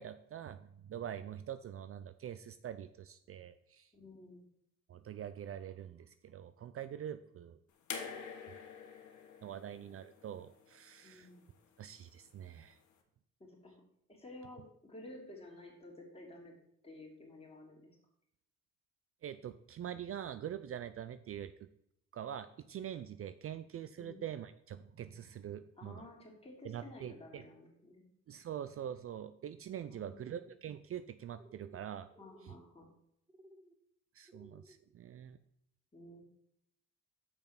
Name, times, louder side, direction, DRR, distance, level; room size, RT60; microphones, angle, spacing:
voice 1, 0.0-3.9 4.9-7.6 9.4-11.3 11.8-12.8 19.2-21.7 22.1-26.1 26.6-27.4 28.3-32.1 32.5-32.6 34.1-35.4, right 10 dB, 50° right, 12 dB, 0.5 m, -44 dB
voice 2, 3.9-4.4 11.0-11.4 13.4-13.7 14.1-16.5 16.8-17.9 24.0-24.3 25.8-28.0 29.9-30.4 32.2-32.9 35.9-36.2, left 2 dB, 20° left, -2 dB, 3.0 m, -53 dB
sound 1, 7.9-11.1 12.3-12.4, left 6 dB, 75° left, 1.5 m, -46 dB
sound 2, 30.1-30.6 31.4-31.9 32.1-32.6 33.3-33.7 34.3-34.8, right 1 dB, 10° right, 0.7 m, -60 dB
6.9 x 5.4 x 5.9 m, 0.76 s
cardioid pair, 90°, 30 cm